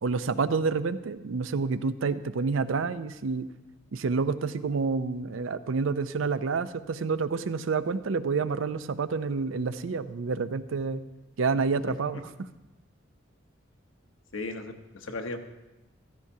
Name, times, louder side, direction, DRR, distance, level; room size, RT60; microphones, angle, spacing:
voice 1, 0.0-3.5 3.9-11.0 11.4-12.3, right 4 dB, 75° right, 13 dB, 0.5 m, -28 dB
voice 2, 14.3-15.4, left 2 dB, 80° left, 5 dB, 1.1 m, -36 dB
14.5 x 13.5 x 2.8 m, 1.0 s
head